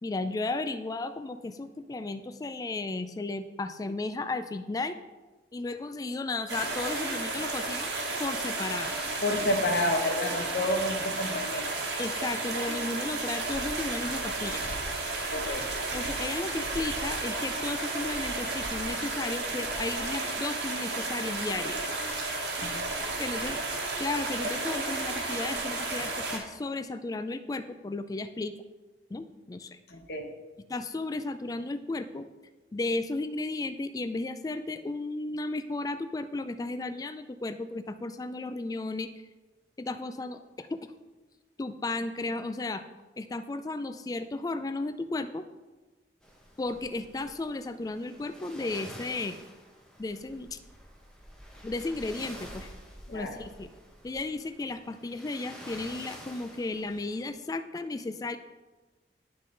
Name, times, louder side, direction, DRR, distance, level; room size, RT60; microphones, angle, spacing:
voice 1, 0.0-5.0 5.5-7.9 8.2-8.9 12.0-14.6 15.9-21.8 23.2-23.6 24.0-28.5 29.1-29.8 30.7-32.3 32.7-39.1 39.8-40.9 41.6-42.8 43.2-45.4 46.6-49.4 50.0-50.6 51.6-52.7 53.1-53.7 54.0-58.4, left 2 dB, 20° left, 10 dB, 0.3 m, -34 dB
sound 1, 6.5-26.4, right 2 dB, 80° right, 1.3 m, -32 dB
voice 2, 9.2-11.7 15.3-15.6 22.6-23.0 29.9-30.3 53.1-53.4, left 1 dB, 65° left, 4 dB, 1.0 m, -30 dB
sound 2, 46.2-57.3, equal, 5° left, 0.9 m, -48 dB
11.0 x 3.8 x 3.8 m, 1.2 s
head